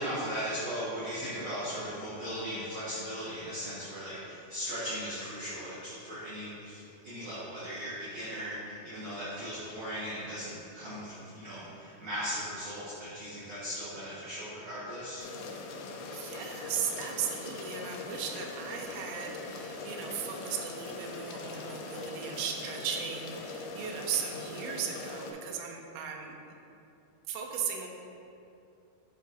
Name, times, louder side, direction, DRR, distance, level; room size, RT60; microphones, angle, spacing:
voice 1, 0.0-15.3, equal, 55° right, -13 dB, 2.3 m, -38 dB
sound 1, 15.2-25.3, left 3 dB, 80° left, 2.2 m, -41 dB
voice 2, 16.1-26.4 27.3-27.9, right 7 dB, 85° right, 1 dB, 2.9 m, -37 dB
12.0 x 4.7 x 2.6 m, 2.8 s
omnidirectional pair, 5.0 m